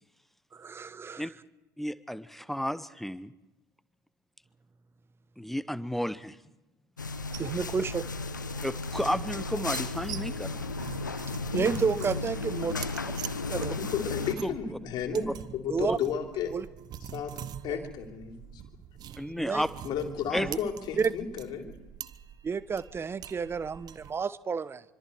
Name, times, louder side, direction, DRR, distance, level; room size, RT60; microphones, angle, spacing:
voice 1, 0.5-1.2 7.4-8.0 11.5-12.7 13.5-13.7 15.1-15.2 15.7-16.0 16.5-16.6 19.4-19.6 20.3-20.6 21.0-21.1 22.4-24.8, right 5 dB, 25° right, 18 dB, 1.0 m, -30 dB
voice 2, 1.8-3.3 5.4-6.4 8.6-10.7 13.6-13.7 14.4-14.5 15.9-16.0 19.2-19.7 20.3-20.5, equal, ahead, 16 dB, 1.0 m, -32 dB
sound 1, 7.0-14.3, left 3 dB, 85° left, 1.1 m, -34 dB
sound 2, 7.2-24.1, right 10 dB, 45° right, 1.1 m, -45 dB
voice 3, 13.8-16.6 17.0-18.6 19.8-21.8, left 7 dB, 45° left, 3 dB, 3.5 m, -34 dB
26.0 x 25.5 x 4.6 m, 1.0 s
figure-of-eight pair, 65°, 10 cm